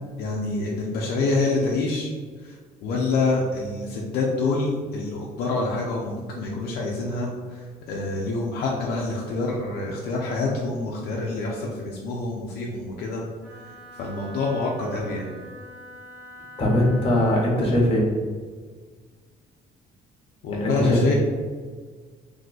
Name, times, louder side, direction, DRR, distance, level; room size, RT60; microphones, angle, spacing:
voice 1, 0.2-2.1 2.4-2.6 2.8-13.2 14.0-15.3 20.4-21.1, left 3 dB, 70° left, -2 dB, 0.5 m, -26 dB
Wind instrument woodwind instrument, 13.4-17.6, equal, 45° right, 1.4 m, -44 dB
voice 2, 16.6-18.1 20.6-21.1, left 1 dB, 35° left, -2 dB, 0.9 m, -21 dB
2.7 x 2.2 x 4.0 m, 1.5 s
cardioid pair, 110°, 17 cm